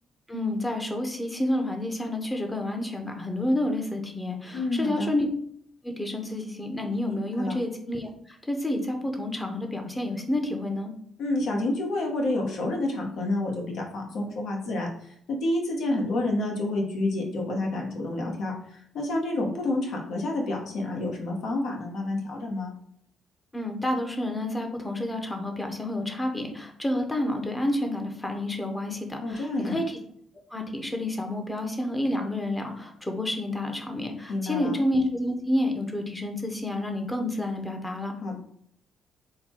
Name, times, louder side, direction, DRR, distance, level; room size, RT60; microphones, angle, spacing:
voice 1, 0.3-5.3 5.8-10.9 23.5-29.8 30.5-38.1, left 1 dB, 15° left, 3 dB, 0.8 m, -29 dB
voice 2, 4.5-5.1 7.4-7.5 11.2-22.7 29.2-29.8 34.3-34.7 38.2-38.4, left 2 dB, 70° left, 0 dB, 1.1 m, -29 dB
3.8 x 2.2 x 4.3 m, 0.68 s
cardioid pair, 90°, 0 cm